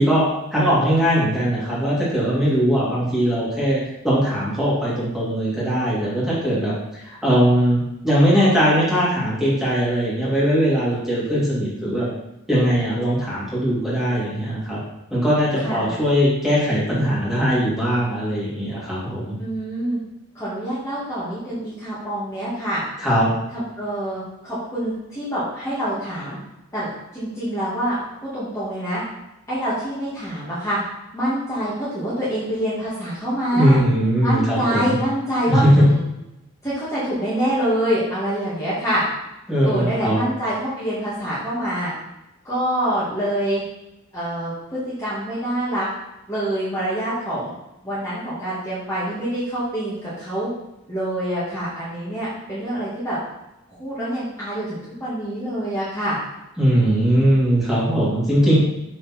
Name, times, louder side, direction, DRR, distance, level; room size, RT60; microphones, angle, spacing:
voice 1, 0.0-12.1 12.5-14.8 15.1-19.4 23.0-23.3 33.5-35.0 35.5-35.7 39.5-40.2 56.6-58.5, equal, ahead, -8 dB, 2.6 m, -20 dB
voice 2, 15.6-15.9 19.4-20.0 20.3-22.8 23.5-26.4 26.7-28.0 28.3-29.0 29.5-30.8 31.1-33.8 34.2-36.0 36.6-39.0 39.6-41.9 42.4-43.6 44.1-45.9 46.3-47.5 47.8-50.5 50.9-53.2 53.7-56.2, right 1 dB, 15° left, -10 dB, 2.2 m, -26 dB
6.6 x 6.5 x 4.4 m, 0.91 s
head